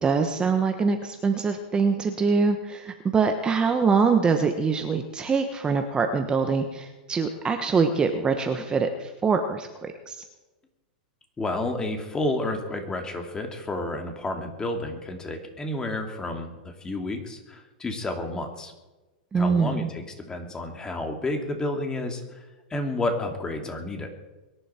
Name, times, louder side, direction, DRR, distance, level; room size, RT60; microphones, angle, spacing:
voice 1, 0.0-10.2 19.3-19.9, right 5 dB, 20° right, 6 dB, 1.3 m, -24 dB
voice 2, 11.4-18.7 19.3-22.4 22.7-24.1, left 2 dB, 15° left, 4 dB, 2.7 m, -30 dB
22.5 x 11.0 x 4.5 m, 1.1 s
hypercardioid pair, 125°, 5 cm